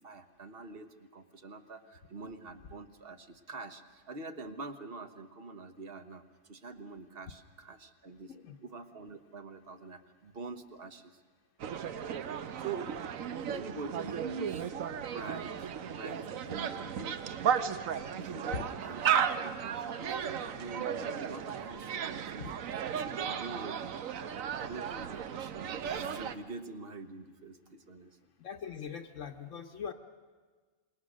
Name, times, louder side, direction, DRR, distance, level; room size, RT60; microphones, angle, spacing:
voice 1, 0.0-8.3 8.6-11.2 12.4-13.0 13.5-14.7 15.0-17.6 18.1-19.0 19.4-22.5 23.0-28.2, right 3 dB, 45° right, 9 dB, 1.3 m, -45 dB
voice 2, 8.3-8.6 18.5-18.7 22.4-22.5 28.4-29.9, left 7 dB, 70° left, 4 dB, 1.2 m, -41 dB
sound 1, 11.6-26.4, right 8 dB, 85° right, 1.3 m, -35 dB
27.5 x 21.5 x 6.4 m, 1.5 s
omnidirectional pair, 1.4 m